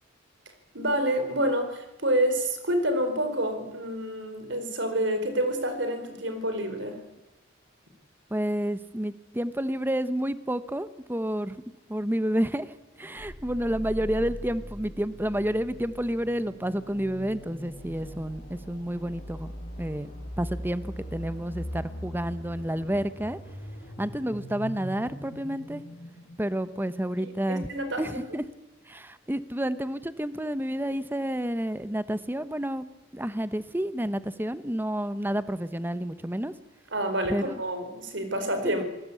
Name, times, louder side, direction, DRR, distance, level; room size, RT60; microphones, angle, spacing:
voice 1, 0.7-7.0 27.2-28.0 36.9-38.8, right 1 dB, 65° right, 8 dB, 4.3 m, -28 dB
voice 2, 8.3-11.6 11.9-19.5 19.8-23.4 24.0-25.8 26.4-27.7 28.0-28.4 28.9-32.9 33.1-36.5 37.3-37.5 38.6-38.8, right 1 dB, 10° right, 13 dB, 0.9 m, -30 dB
sound 1, 13.2-26.9, equal, 40° left, 7.2 m, -41 dB
27.0 x 19.0 x 8.5 m, 1.0 s
head